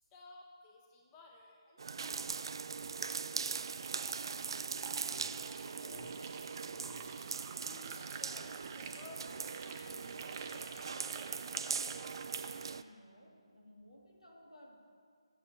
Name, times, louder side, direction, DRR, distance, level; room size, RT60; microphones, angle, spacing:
voice 1, 0.1-3.7 8.2-9.3 9.6-11.3, left 2 dB, 15° left, 0 dB, 1.1 m, -58 dB
sound 1, 1.8-12.8, right 5 dB, 50° right, 0.4 m, -41 dB
sound 2, 3.6-12.7, right 6 dB, 25° right, 0.7 m, -50 dB
voice 2, 4.3-6.2 12.7-14.8, left 1 dB, 90° left, -2 dB, 3.2 m, -58 dB
sound 3, 5.1-5.6 5.9-6.4 6.7-12.5, left 3 dB, 40° left, 3.7 m, -60 dB
14.0 x 7.9 x 7.1 m, 2.2 s
figure-of-eight pair, 150°, 3 cm